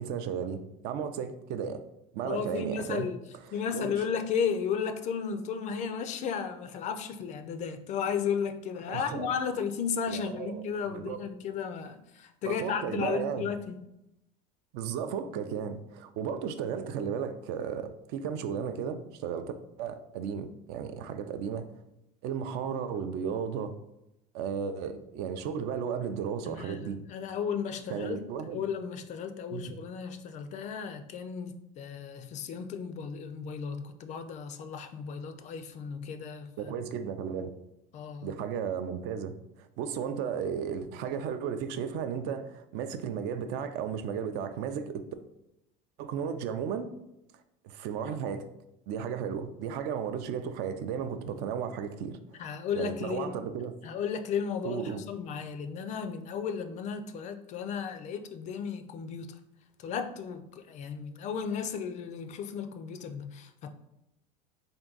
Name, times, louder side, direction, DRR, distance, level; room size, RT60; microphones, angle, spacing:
voice 1, 0.0-1.8 2.1-3.1 3.7-3.9 8.9-9.3 10.1-11.2 12.5-13.5 14.7-19.5 19.8-21.6 22.2-23.7 24.3-27.0 27.9-28.6 29.5-29.7 36.6-37.5 38.2-39.3 39.8-45.0 46.0-46.9 47.6-48.4 48.9-52.2 52.7-53.7 54.6-55.0, right 7 dB, 60° right, 0.4 m, -34 dB
voice 2, 2.2-3.2 3.5-13.8 26.4-36.7 37.9-38.3 52.4-53.3 53.8-59.4 59.8-63.7, left 6 dB, 40° left, 0.4 m, -34 dB
3.6 x 2.6 x 3.8 m
cardioid pair, 140°, 19 cm